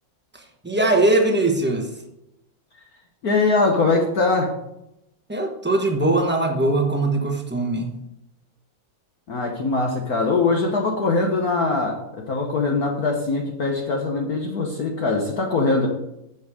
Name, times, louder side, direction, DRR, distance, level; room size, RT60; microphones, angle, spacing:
voice 1, 0.3-1.9 5.3-7.9, right 2 dB, 10° right, 2 dB, 0.5 m, -21 dB
voice 2, 3.2-4.5 9.3-15.9, left 3 dB, 55° left, 1 dB, 1.3 m, -22 dB
8.2 x 7.2 x 4.9 m, 0.85 s
omnidirectional pair, 2.3 m